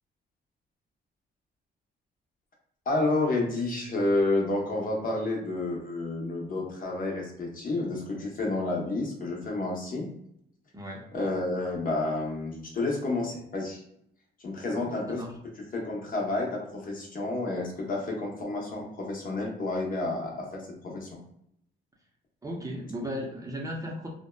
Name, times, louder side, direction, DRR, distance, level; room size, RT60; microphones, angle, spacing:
voice 1, 2.9-10.1 11.1-13.8 14.4-15.2 15.7-21.2, left 2 dB, 45° left, -1 dB, 0.8 m, -30 dB
voice 2, 10.7-11.1 14.7-15.4 22.4-24.1, equal, 15° right, -2 dB, 0.6 m, -36 dB
2.7 x 2.1 x 2.2 m, 0.74 s
cardioid pair, 90°, 20 cm